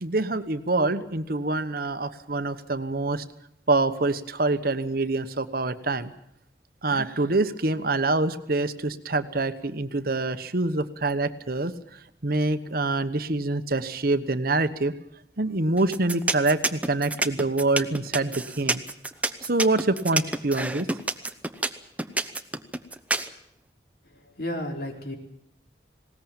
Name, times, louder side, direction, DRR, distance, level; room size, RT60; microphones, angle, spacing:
voice 1, 0.0-3.2 3.7-6.1 6.8-11.7 12.2-14.9 15.4-18.8 19.4-20.9, right 2 dB, 55° right, 11 dB, 1.1 m, -25 dB
sound 1, 15.8-23.3, right 2 dB, 10° right, 0.9 m, -27 dB
voice 2, 24.0-25.2, left 1 dB, 55° left, 3 dB, 4.2 m, -33 dB
20.0 x 18.5 x 8.9 m, 0.77 s
head